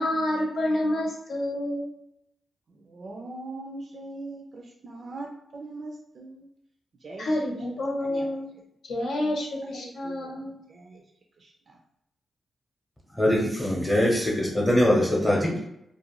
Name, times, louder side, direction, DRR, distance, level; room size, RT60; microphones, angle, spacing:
voice 1, 0.0-1.8 7.2-8.5 8.8-10.5, left 1 dB, 80° left, -2 dB, 0.7 m, -28 dB
voice 2, 2.9-6.5 7.0-7.3 8.1-8.3 9.8-10.4 10.7-11.0 11.4-11.7, right 2 dB, 60° right, 0 dB, 0.4 m, -41 dB
voice 3, 13.2-15.7, left 1 dB, 15° left, -3 dB, 0.7 m, -22 dB
2.4 x 2.1 x 2.9 m, 0.80 s
cardioid pair, 65°, 0 cm